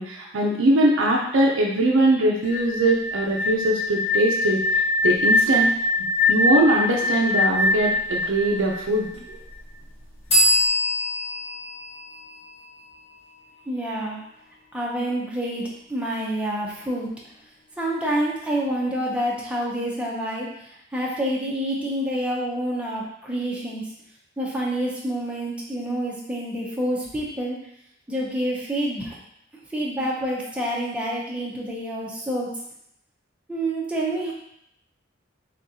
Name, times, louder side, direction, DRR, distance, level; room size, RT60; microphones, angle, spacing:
voice 1, 0.0-5.7 6.3-9.1, right 1 dB, 70° right, -2 dB, 0.5 m, -21 dB
sound 1, 2.4-9.3, left 2 dB, 70° left, 0.7 m, -23 dB
sound 2, 10.3-13.9, equal, 30° left, 1.3 m, -24 dB
voice 2, 13.7-14.2 14.7-17.1 17.8-23.9 24.4-27.6 28.1-29.2 29.7-32.5 33.5-34.3, right 1 dB, 5° right, -5 dB, 0.6 m, -27 dB
3.7 x 3.6 x 2.7 m, 0.77 s
head